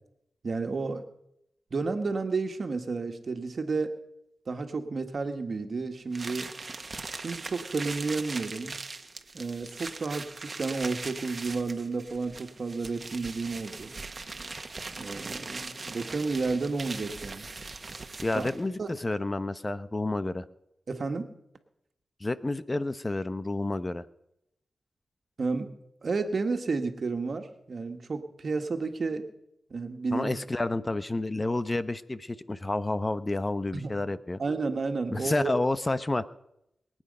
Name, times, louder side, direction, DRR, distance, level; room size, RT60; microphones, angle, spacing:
voice 1, 0.4-1.1 1.7-4.0 4.5-6.5 7.1-8.8 9.3-13.9 15.0-17.5 18.3-18.5 18.8-18.9 20.9-21.3 25.4-25.7 26.0-29.3 29.7-30.3 33.7-33.9 34.4-35.5, right 4 dB, 60° right, 6 dB, 1.9 m, -31 dB
sound 1, 6.1-18.7, right 3 dB, 45° right, 1.5 m, -40 dB
voice 2, 18.2-20.4 22.2-24.0 30.1-34.4 35.1-36.2, left 2 dB, 30° left, 14 dB, 0.9 m, -30 dB
23.0 x 9.0 x 5.5 m, 0.80 s
cardioid pair, 45°, 0 cm